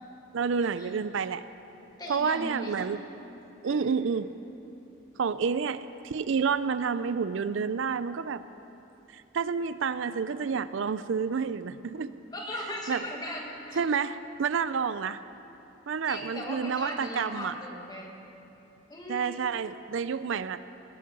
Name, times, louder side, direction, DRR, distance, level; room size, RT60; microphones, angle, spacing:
voice 1, 0.3-1.4 2.1-3.0 3.6-4.3 5.2-8.4 9.1-12.1 12.9-13.0 13.8-15.2 15.9-17.5 19.1-20.6, right 6 dB, 75° right, 13 dB, 0.4 m, -29 dB
voice 2, 2.0-3.0 3.6-4.0 12.3-13.9 16.1-18.1 18.9-19.4, equal, 20° left, -1 dB, 1.9 m, -38 dB
20.5 x 12.5 x 5.3 m, 2.9 s
head